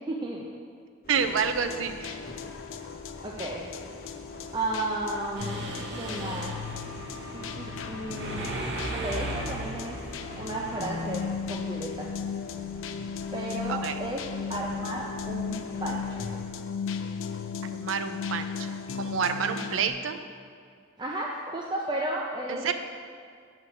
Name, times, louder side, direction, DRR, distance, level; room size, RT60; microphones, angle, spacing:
voice 1, 0.1-0.5 3.2-3.6 4.5-5.7 5.9-6.6 7.3-8.5 8.9-10.0 10.3-11.2 11.5-12.1 13.3-16.3 19.5-19.6 21.0-22.7, right 1 dB, 25° right, -3 dB, 0.4 m, -33 dB
sound 1, 1.0-16.4, left 1 dB, 50° left, 1.0 m, -47 dB
sound 2, 1.1-19.9, left 6 dB, 80° left, 0.4 m, -36 dB
voice 2, 1.1-2.2 13.7-14.0 17.6-18.5 18.9-20.2 22.5-22.7, right 6 dB, 85° right, 9 dB, 0.5 m, -28 dB
Mechanisms, 5.3-11.3, right 1 dB, 60° right, 0.9 m, -37 dB
6.3 x 4.3 x 6.0 m, 2.2 s
head